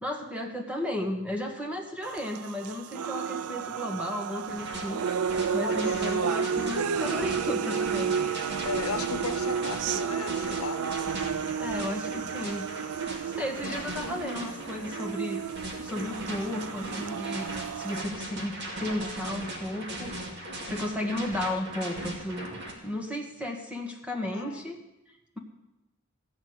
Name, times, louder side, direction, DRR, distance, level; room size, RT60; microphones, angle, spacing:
voice 1, 0.0-8.2 11.6-12.7 13.3-15.4 15.8-24.8, left 1 dB, 5° right, 2 dB, 1.6 m, -34 dB
sound 1, 2.0-18.0, right 7 dB, 85° right, 0.4 m, -32 dB
sound 2, 4.5-22.7, right 1 dB, 50° right, 2.4 m, -38 dB
voice 2, 5.6-6.5 8.6-10.8 16.8-17.1 24.1-24.6, left 4 dB, 75° left, 9 dB, 1.1 m, -36 dB
14.5 x 7.0 x 9.6 m, 0.96 s
head